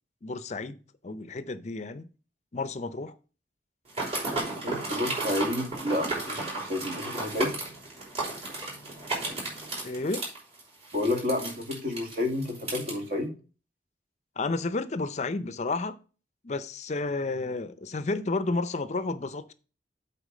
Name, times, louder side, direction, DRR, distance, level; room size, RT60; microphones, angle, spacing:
voice 1, 0.2-2.1 2.5-3.1 9.8-10.3 14.4-16.0 16.4-19.5, left 3 dB, 40° left, 0.5 m, -31 dB
sound 1, 3.9-12.9, right 2 dB, 35° right, 4.7 m, -34 dB
voice 2, 4.5-7.5 10.9-13.3, left 2 dB, 50° right, 1.8 m, -30 dB
8.1 x 4.5 x 6.4 m
head